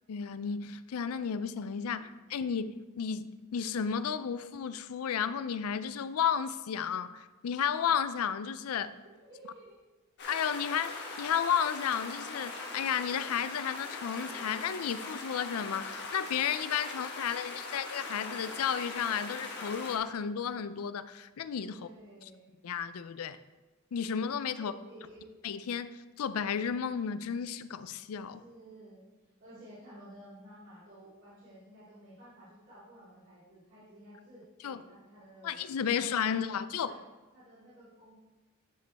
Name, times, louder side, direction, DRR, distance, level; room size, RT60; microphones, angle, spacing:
voice 1, 0.1-8.9 10.3-21.9 22.2-22.3 22.6-23.4 23.9-24.7 25.4-28.4 34.6-34.8 35.4-36.9, left 7 dB, 80° left, 13 dB, 0.4 m, -33 dB
voice 2, 1.8-2.6 9.0-9.8 21.7-22.5 24.5-25.3 28.4-35.6 36.0-37.0 37.3-38.2, right 1 dB, 55° right, -11 dB, 2.7 m, -53 dB
sound 1, 10.2-20.0, left 3 dB, 55° left, 1.2 m, -41 dB
10.0 x 5.2 x 3.4 m, 1.2 s
head